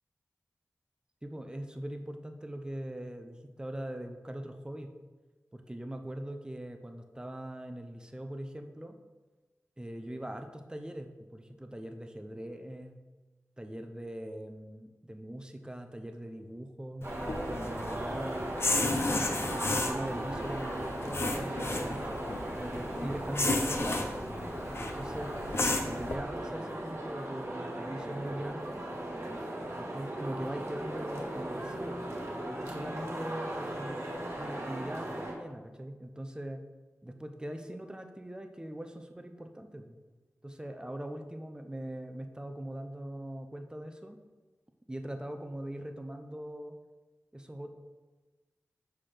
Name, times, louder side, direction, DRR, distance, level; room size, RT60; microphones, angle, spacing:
voice 1, 1.2-4.9 5.5-9.0 9.8-13.0 13.6-18.5 18.8-22.2 22.5-25.4 25.8-28.8 29.8-32.1 32.5-34.0 34.4-36.6 37.0-40.0 40.4-44.2 44.9-46.7 47.3-47.7, right 1 dB, 15° right, 6 dB, 0.6 m, -41 dB
sound 1, 17.0-26.2, left 2 dB, 50° left, 0.6 m, -33 dB
sound 2, 17.0-35.3, right 1 dB, 55° right, 1.4 m, -38 dB
6.0 x 5.8 x 3.3 m, 1.3 s
wide cardioid pair, 65°, 6 cm